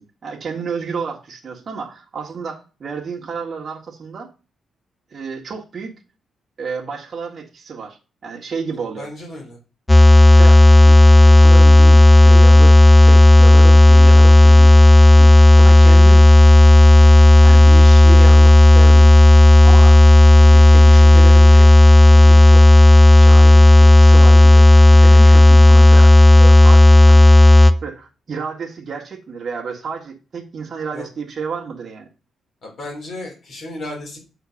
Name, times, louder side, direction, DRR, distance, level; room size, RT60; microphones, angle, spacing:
voice 1, 0.0-4.3 5.1-5.9 6.6-9.1 10.3-15.3 15.6-16.3 17.0-19.1 19.6-20.0 20.4-21.7 22.1-22.7 23.2-27.2 27.5-32.1, right 5 dB, 40° right, 0 dB, 1.8 m, -31 dB
voice 2, 9.0-9.6 30.9-31.1 32.6-34.2, left 2 dB, 50° left, 0 dB, 3.6 m, -34 dB
sound 1, 9.9-27.7, left 1 dB, 5° left, 0.6 m, -8 dB
8.3 x 4.4 x 6.4 m, 0.33 s
cardioid pair, 150°, 0 cm